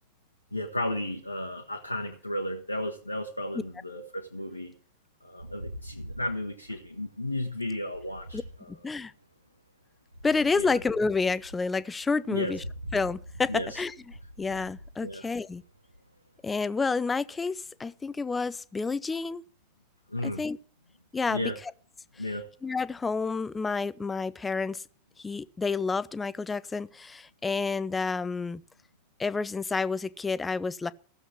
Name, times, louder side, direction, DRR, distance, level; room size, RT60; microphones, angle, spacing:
voice 1, 0.5-4.7 5.2-8.7 10.6-10.7 12.3-12.5 13.5-13.8 15.0-15.2 20.1-20.4 21.3-21.6 22.2-22.5, left 1 dB, 85° left, 1.3 m, -34 dB
sound 1, 5.4-9.4 10.1-16.4, equal, 85° right, 0.8 m, -45 dB
voice 2, 8.7-9.1 10.2-12.6 12.9-13.9 14.4-15.6 16.4-19.4 20.2-20.6 21.1-21.7 22.2-22.3 22.6-24.8 25.2-28.6 29.2-30.9, left 4 dB, 15° left, 0.6 m, -29 dB
15.0 x 7.4 x 8.7 m
figure-of-eight pair, 90°, 0 cm